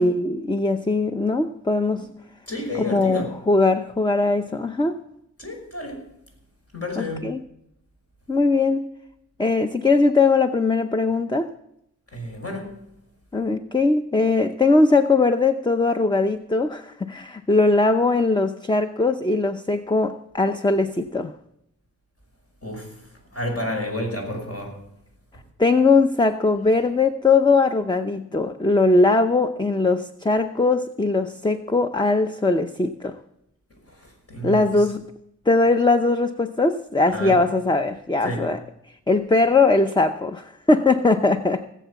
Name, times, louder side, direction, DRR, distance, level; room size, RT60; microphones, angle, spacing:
voice 1, 0.0-2.1 2.8-5.0 7.0-7.4 8.3-8.8 9.4-11.5 13.3-21.3 25.6-33.1 34.4-35.0 35.5-38.6 39.1-41.6, left 3 dB, 15° left, 8 dB, 0.7 m, -20 dB
voice 2, 2.5-3.3 5.4-6.1 6.7-7.3 12.1-12.8 22.6-24.8 33.7-34.9 37.1-37.4 38.2-38.5, left 1 dB, 50° left, 1 dB, 5.6 m, -31 dB
18.5 x 7.5 x 7.0 m, 0.78 s
wide cardioid pair, 80°, 31 cm